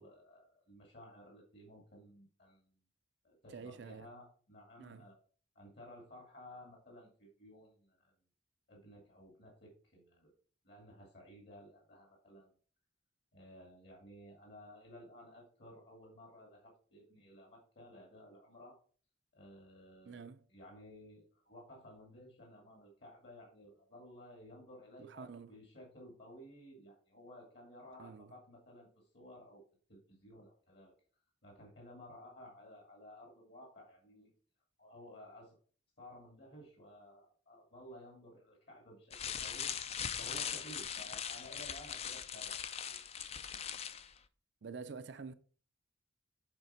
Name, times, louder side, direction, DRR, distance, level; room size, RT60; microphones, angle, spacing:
voice 1, 0.0-2.7 3.2-5.2 5.5-8.1 8.7-10.3 10.6-12.5 13.3-18.8 19.3-20.2 20.5-29.6 29.9-30.9 31.4-34.3 34.8-35.6 36.0-39.7 40.2-43.1, equal, 55° left, 2.3 m, -55 dB
voice 2, 3.5-4.1 4.8-5.1 20.1-20.4 25.0-25.5 28.0-28.3 44.6-45.3, right 5 dB, 60° right, 0.5 m, -48 dB
sound 1, 39.1-44.1, left 8 dB, 30° left, 0.4 m, -40 dB
8.0 x 4.4 x 4.4 m
head